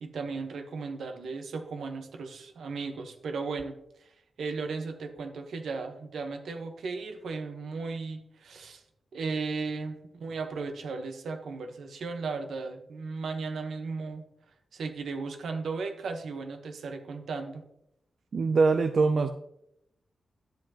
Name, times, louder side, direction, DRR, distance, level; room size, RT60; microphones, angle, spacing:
voice 1, 0.0-4.1 4.4-8.8 9.1-14.3 14.7-17.6, right 4 dB, 85° right, 6 dB, 1.0 m, -36 dB
voice 2, 18.3-19.3, right 4 dB, 55° right, 8 dB, 0.4 m, -23 dB
10.5 x 7.6 x 2.9 m, 0.78 s
wide cardioid pair, 140°, 0 cm